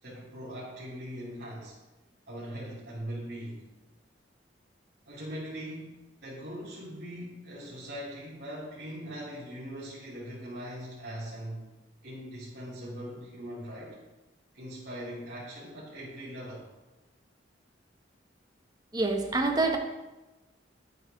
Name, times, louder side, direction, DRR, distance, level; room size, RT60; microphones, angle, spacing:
voice 1, 0.0-1.7 2.3-3.6 5.1-11.7 12.0-14.0 14.5-16.6, equal, 60° right, -11 dB, 3.7 m, -41 dB
voice 2, 18.9-19.8, right 3 dB, 20° right, 3 dB, 1.1 m, -26 dB
9.8 x 9.2 x 4.6 m, 1.1 s
head